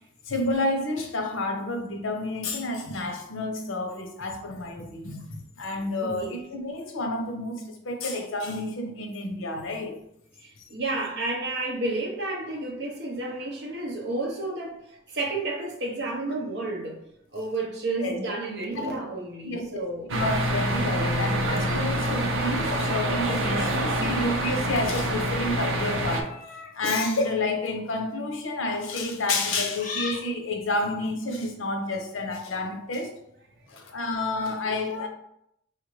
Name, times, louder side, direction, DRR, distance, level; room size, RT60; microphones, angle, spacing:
voice 1, 0.3-10.0 18.0-18.2 18.8-18.9 19.4-33.1 33.7-35.1, left 2 dB, 85° left, 0.7 m, -30 dB
voice 2, 6.0-6.4 10.7-14.8 15.1-17.0 17.3-20.1 24.4-24.5, right 2 dB, 55° right, 0.8 m, -31 dB
sound 1, 20.1-26.2, right 1 dB, 90° right, 0.6 m, -26 dB
sound 2, 25.8-26.8 27.6-27.9 29.8-30.3, left 4 dB, 40° left, 0.5 m, -37 dB
4.5 x 2.5 x 3.1 m
head